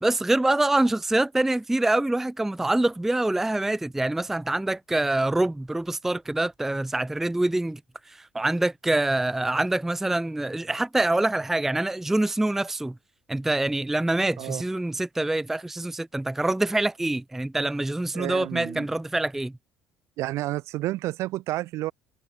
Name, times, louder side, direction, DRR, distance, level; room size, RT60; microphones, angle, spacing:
voice 1, 0.0-7.8 8.1-13.0 13.3-19.5, right 2 dB, 5° right, 0.3 m, -25 dB
voice 2, 18.1-18.9 20.2-21.9, right 17 dB, 55° right, 0.6 m, -30 dB
figure-of-eight pair, 55°, 6 cm